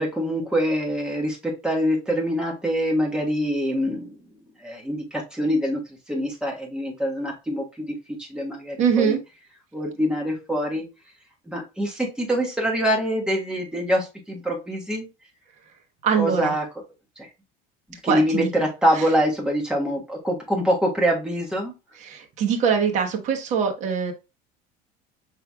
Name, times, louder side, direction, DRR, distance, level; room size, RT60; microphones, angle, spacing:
voice 1, 0.0-4.2 4.6-5.8 6.1-9.2 9.7-10.8 11.5-15.0 16.2-16.6 17.2-17.3 18.0-21.7, equal, 5° right, -2 dB, 1.3 m, -25 dB
voice 2, 8.8-9.2 16.0-16.5 18.1-18.5 18.9-19.1 22.0-24.1, right 7 dB, 45° right, 4 dB, 1.1 m, -23 dB
5.8 x 3.3 x 2.3 m, 0.27 s
cardioid pair, 150°, 17 cm